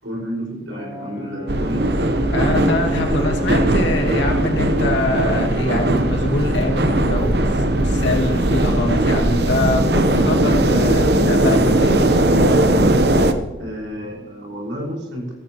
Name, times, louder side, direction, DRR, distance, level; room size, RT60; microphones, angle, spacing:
voice 1, 0.0-2.0 13.6-15.3, equal, 85° right, -3 dB, 5.4 m, -30 dB
Brass instrument, 0.7-4.9, right 1 dB, 40° left, 2.7 m, -30 dB
sound 1, 1.5-13.3, right 1 dB, 55° right, 1.0 m, -18 dB
voice 2, 2.3-12.1, left 2 dB, 70° left, 1 dB, 2.2 m, -24 dB
15.5 x 14.5 x 3.1 m, 1.2 s
head